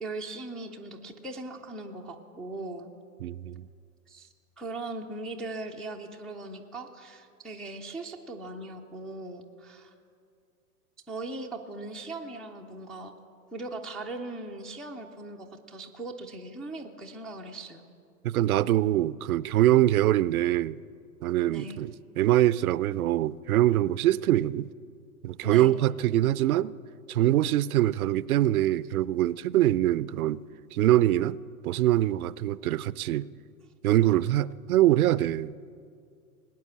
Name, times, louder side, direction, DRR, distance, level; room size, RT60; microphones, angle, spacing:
voice 1, 0.0-2.9 4.1-4.3 4.6-9.9 11.1-13.1 13.5-17.8 21.5-21.8 25.4-25.7, right 2 dB, ahead, 0.3 m, -39 dB
voice 2, 3.2-3.6 18.2-20.8 21.2-24.7 25.2-26.8 27.1-30.4 30.7-31.4 31.6-33.3 33.8-35.5, right 14 dB, 65° right, 0.5 m, -24 dB
19.5 x 9.3 x 7.3 m
hypercardioid pair, 105°, 46 cm